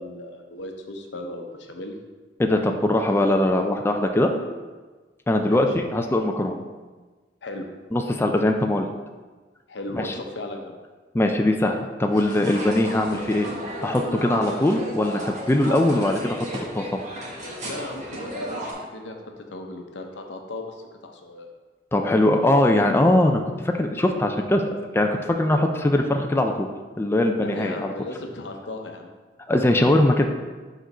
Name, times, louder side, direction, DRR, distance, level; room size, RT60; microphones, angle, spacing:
voice 1, 0.0-1.9 5.4-5.7 7.4-7.7 9.7-10.8 17.6-21.5 27.4-29.1, left 1 dB, 85° left, 3 dB, 0.8 m, -36 dB
voice 2, 2.4-4.3 5.3-6.6 7.9-8.9 9.9-10.1 11.1-13.5 13.8-16.5 16.7-16.8 21.9-26.7 27.0-27.9 29.5-30.3, left 1 dB, 15° left, 4 dB, 0.3 m, -21 dB
sound 1, 12.1-18.7, equal, 45° right, 1.4 m, -34 dB
5.1 x 3.8 x 5.5 m, 1.3 s
head